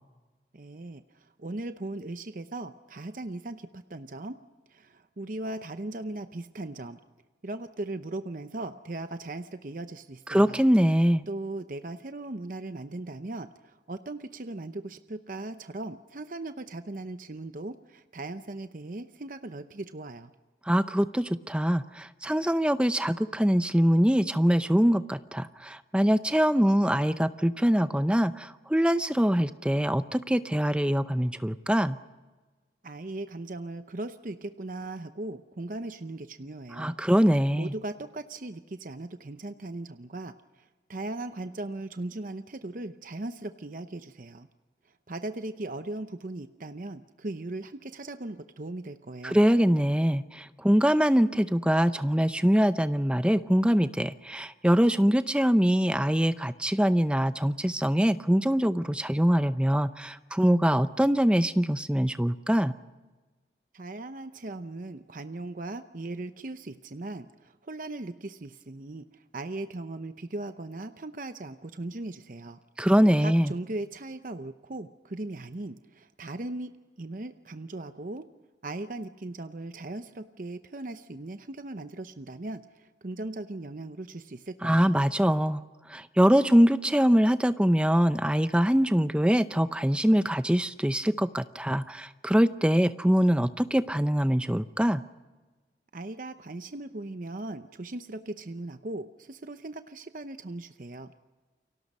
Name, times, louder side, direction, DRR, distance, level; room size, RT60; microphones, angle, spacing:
voice 1, 0.5-4.4 4.7-7.0 7.4-10.6 11.3-20.3 32.8-37.0 37.5-44.5 44.8-49.4 63.7-72.6 73.2-78.3 78.6-84.9 95.9-101.1, right 2 dB, 50° right, 9 dB, 0.7 m, -38 dB
voice 2, 10.3-11.2 20.7-32.0 36.8-37.7 49.2-62.7 72.8-73.5 84.6-85.6 85.9-95.0, equal, 5° right, 12 dB, 0.6 m, -23 dB
29.5 x 23.5 x 5.5 m, 1.3 s
head